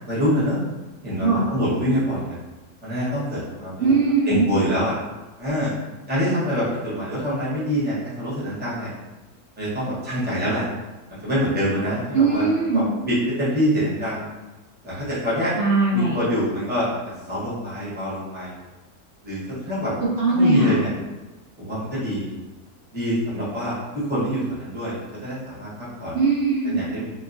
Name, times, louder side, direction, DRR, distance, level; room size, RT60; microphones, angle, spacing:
voice 1, 0.1-0.6 1.0-2.3 2.8-3.9 4.3-4.9 5.4-5.7 6.1-8.9 9.6-10.7 11.2-12.5 12.7-14.3 14.8-15.5 15.9-16.9 17.3-18.5 19.2-19.9 20.3-20.9 21.6-22.3 22.9-26.2 26.6-27.1, equal, 10° right, -9 dB, 0.7 m, -25 dB
voice 2, 3.8-4.4 12.1-12.9 15.6-16.1 20.2-20.7 26.1-26.8, right 3 dB, 80° right, -7 dB, 0.5 m, -20 dB
2.9 x 2.2 x 2.5 m, 1.2 s
omnidirectional pair, 1.6 m